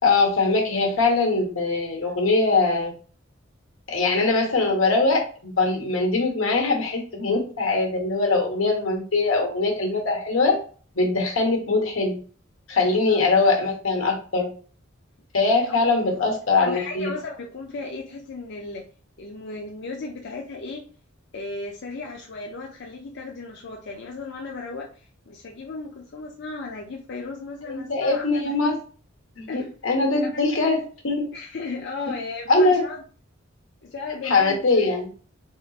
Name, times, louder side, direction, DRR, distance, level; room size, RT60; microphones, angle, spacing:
voice 1, 0.0-2.9 3.9-10.6 10.9-12.2 12.7-14.5 15.3-17.1 27.7-28.8 29.4-31.3 32.5-32.8 34.2-35.1, left 3 dB, 90° left, 1 dB, 1.3 m, -22 dB
voice 2, 12.9-13.2 15.7-15.8 16.6-18.9 19.2-20.8 21.3-28.5 29.5-29.7 30.2-30.4 31.3-33.0 33.8-34.9, left 3 dB, 60° left, 0 dB, 0.5 m, -35 dB
4.0 x 3.6 x 2.4 m, 0.40 s
head